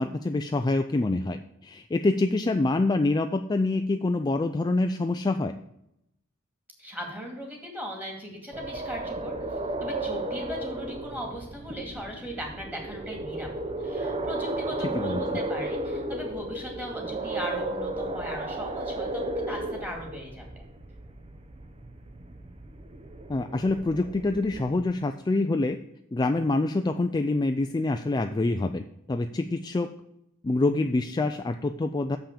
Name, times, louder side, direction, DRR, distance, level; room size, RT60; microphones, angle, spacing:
voice 1, 0.0-5.5 14.9-15.4 23.3-25.8 26.1-29.9 30.4-32.2, left 2 dB, 20° left, 7 dB, 0.3 m, -26 dB
voice 2, 6.8-13.5 13.8-20.7, equal, 10° right, 0 dB, 2.3 m, -38 dB
sound 1, 8.5-24.8, right 2 dB, 30° right, 0.7 m, -34 dB
7.0 x 5.8 x 6.6 m, 0.81 s
head